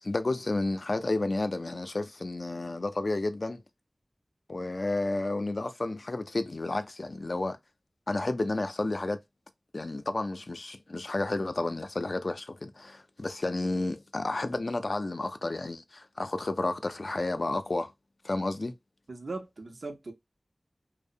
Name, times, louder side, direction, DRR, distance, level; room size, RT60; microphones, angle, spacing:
voice 1, 0.0-3.6 4.5-7.6 8.1-9.2 9.7-17.9 18.2-18.7, left 2 dB, 60° left, 0.4 m, -31 dB
voice 2, 19.1-20.1, right 3 dB, 80° right, 0.6 m, -39 dB
2.7 x 2.0 x 2.5 m
wide cardioid pair, 50°, 0 cm